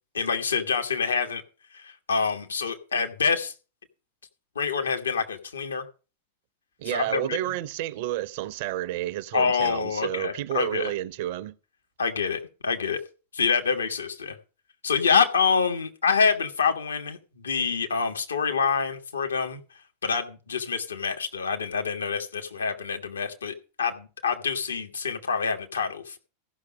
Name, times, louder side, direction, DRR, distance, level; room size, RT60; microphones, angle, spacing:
voice 1, 0.1-1.4 1.7-3.5 4.5-5.8 6.9-7.4 9.3-10.9 12.0-13.0 13.3-14.4 14.8-19.6 20.0-26.2, left 5 dB, 70° left, 1.5 m, -26 dB
voice 2, 6.8-11.5, right 14 dB, 50° right, 0.6 m, -30 dB
14.5 x 6.2 x 6.2 m
figure-of-eight pair, 90°, 0 cm